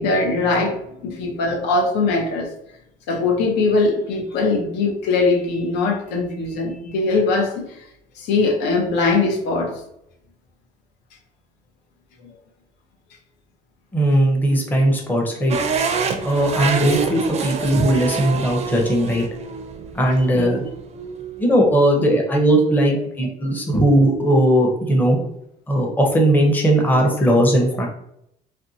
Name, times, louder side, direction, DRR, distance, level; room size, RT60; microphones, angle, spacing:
voice 1, 0.0-2.5 3.1-7.8 8.2-9.8 12.2-12.3 20.3-20.7, left 3 dB, 85° left, 1 dB, 0.7 m, -21 dB
voice 2, 13.9-15.6 16.2-19.2 19.9-20.6 21.4-25.2 25.7-27.9, right 1 dB, 10° left, 0 dB, 0.6 m, -18 dB
sound 1, 15.5-21.6, right 5 dB, 40° right, 0.4 m, -27 dB
2.6 x 2.2 x 2.6 m, 0.76 s
cardioid pair, 110°, 17 cm